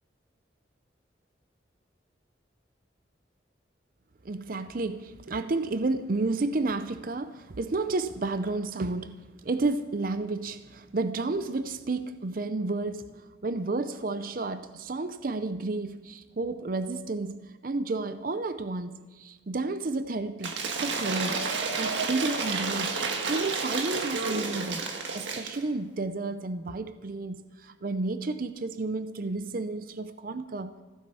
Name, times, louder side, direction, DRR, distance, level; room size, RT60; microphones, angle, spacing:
voice 1, 4.2-21.5 21.8-23.0 23.3-24.9 25.1-30.8, right 3 dB, 50° right, 12 dB, 0.5 m, -31 dB
Cheering / Applause / Crowd, 20.4-25.6, right 4 dB, 85° right, 1.6 m, -31 dB
15.5 x 9.6 x 6.9 m, 1.2 s
head